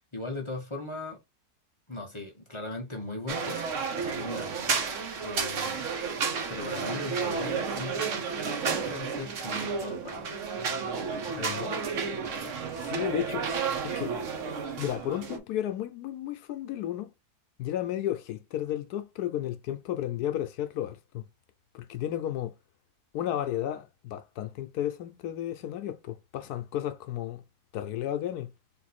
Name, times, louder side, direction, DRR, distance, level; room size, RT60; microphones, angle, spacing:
voice 1, 0.1-1.2 1.9-3.6 4.0-4.8 5.2-5.9 6.5-8.2 8.6-10.3 11.3-11.8 12.4-12.6 14.5-14.7, left 1 dB, 25° left, 0.7 m, -39 dB
sound 1, 3.3-15.4, right 5 dB, 55° right, 1.2 m, -32 dB
voice 2, 11.4-11.7 12.8-13.5 13.8-14.1 14.8-17.1 17.6-21.2 21.7-22.5 23.1-27.4 27.7-28.5, left 11 dB, 80° left, 1.1 m, -33 dB
3.8 x 2.6 x 4.2 m
omnidirectional pair, 1.6 m